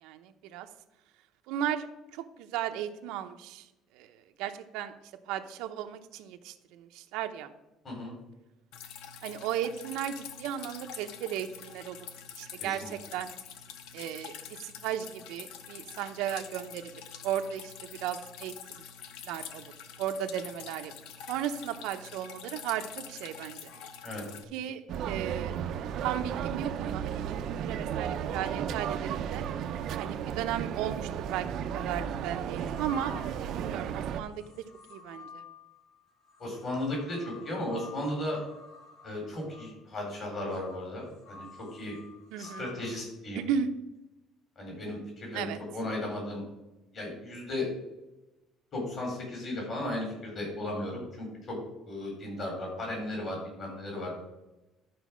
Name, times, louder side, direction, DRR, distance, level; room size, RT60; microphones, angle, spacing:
voice 1, 0.0-0.7 1.5-3.6 3.9-4.9 5.3-7.5 9.2-12.0 12.4-13.3 13.9-14.3 14.6-16.9 17.2-18.6 19.2-19.7 20.0-20.9 21.3-23.7 24.5-25.5 26.0-29.4 30.0-31.5 31.7-33.1 33.5-34.6 34.9-35.4 42.3-42.7 43.3-43.7 45.3-45.6, right 10 dB, 85° right, 7 dB, 0.7 m, -35 dB
Drip, 8.7-24.4, left 8 dB, 80° left, 0.8 m, -46 dB
sound 1, 24.9-34.2, right 8 dB, 50° right, 0.6 m, -34 dB
sound 2, 32.5-33.8 34.3-42.9, left 5 dB, 50° left, 1.8 m, -51 dB
voice 2, 36.4-38.4 39.0-41.5 41.7-42.0 42.4-43.4 44.6-46.4 46.9-47.7 48.7-51.6 51.8-54.1, left 1 dB, 30° left, -1 dB, 3.9 m, -35 dB
11.0 x 4.8 x 6.2 m, 0.98 s
cardioid pair, 170°, 0 cm